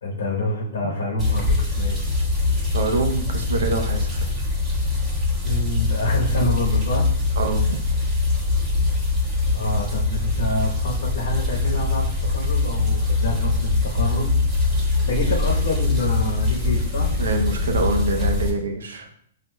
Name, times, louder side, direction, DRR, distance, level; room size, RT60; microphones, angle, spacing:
voice 1, 0.0-2.0 5.4-7.1 9.5-14.3 14.6-14.7 15.1-17.1, left 1 dB, 70° left, -2 dB, 1.0 m, -27 dB
sound 1, 1.2-18.5, left 3 dB, 15° right, 1.5 m, -23 dB
voice 2, 2.7-4.1 7.4-7.8 17.2-19.1, right 3 dB, 85° right, 4 dB, 0.6 m, -25 dB
5.9 x 2.7 x 2.3 m, 0.67 s
hypercardioid pair, 135°, 0 cm